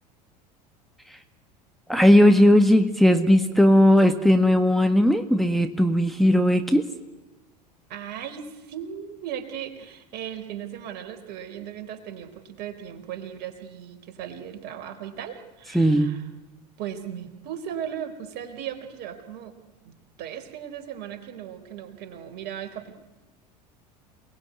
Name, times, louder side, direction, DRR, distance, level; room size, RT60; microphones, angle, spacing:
voice 1, 1.9-6.9 15.7-16.1, equal, ahead, 7 dB, 1.7 m, -17 dB
voice 2, 7.9-16.2 16.8-19.5 19.8-23.0, right 9 dB, 50° right, 8 dB, 4.1 m, -37 dB
28.5 x 20.0 x 9.7 m, 1.1 s
figure-of-eight pair, 75°, 21 cm